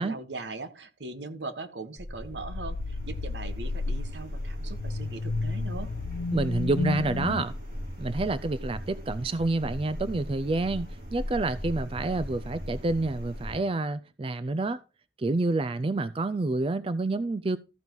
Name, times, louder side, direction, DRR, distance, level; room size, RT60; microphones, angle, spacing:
voice 1, 0.0-5.9, right 3 dB, 80° right, 1.4 m, -40 dB
sound 1, 2.0-13.6, equal, 55° right, 5.4 m, -37 dB
sound 2, 2.2-7.4, left 3 dB, 75° left, 0.5 m, -33 dB
voice 2, 6.3-7.5 8.0-14.8 15.2-17.6, right 2 dB, 30° right, 0.4 m, -28 dB
14.0 x 5.3 x 4.6 m
head